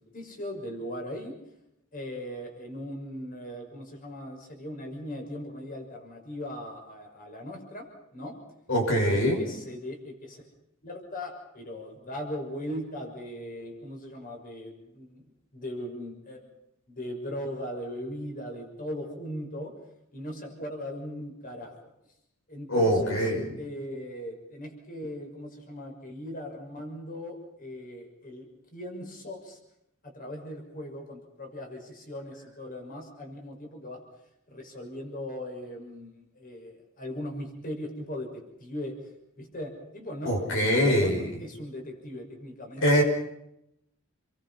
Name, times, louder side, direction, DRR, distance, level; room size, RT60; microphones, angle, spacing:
voice 1, 0.1-1.3 1.9-7.9 8.1-8.4 8.9-9.1 9.4-10.4 10.8-15.2 15.5-16.5 16.9-19.7 20.1-21.8 22.5-23.3 23.6-28.5 28.7-29.6 30.0-34.0 34.5-38.9 39.4-43.0, equal, 45° left, 3 dB, 6.3 m, -39 dB
voice 2, 8.7-9.4 22.7-23.4 40.2-41.3 42.8-43.0, equal, 65° left, 2 dB, 6.1 m, -23 dB
29.0 x 23.0 x 5.7 m, 0.82 s
head